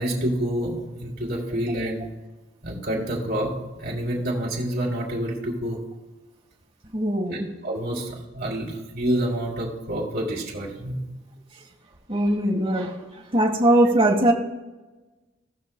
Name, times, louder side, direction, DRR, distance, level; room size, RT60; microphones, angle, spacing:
voice 1, 0.0-2.1 2.6-5.8 7.6-11.0, right 1 dB, 55° right, -3 dB, 2.9 m, -28 dB
voice 2, 6.9-7.5 12.1-13.0 13.3-14.3, right 1 dB, 30° right, 0 dB, 1.4 m, -20 dB
18.5 x 6.4 x 2.2 m, 1.1 s
head